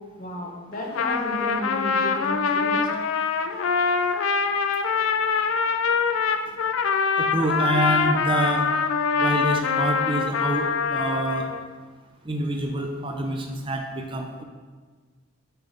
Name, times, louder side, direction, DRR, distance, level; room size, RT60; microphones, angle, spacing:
voice 1, 0.2-2.8, equal, 40° left, 0 dB, 1.1 m, -33 dB
Trumpet, 0.8-11.6, left 5 dB, 80° left, 0.4 m, -24 dB
voice 2, 7.2-8.7 9.2-11.5 12.3-14.4, right 1 dB, 25° right, 2 dB, 0.5 m, -27 dB
6.7 x 4.1 x 5.0 m, 1.5 s
head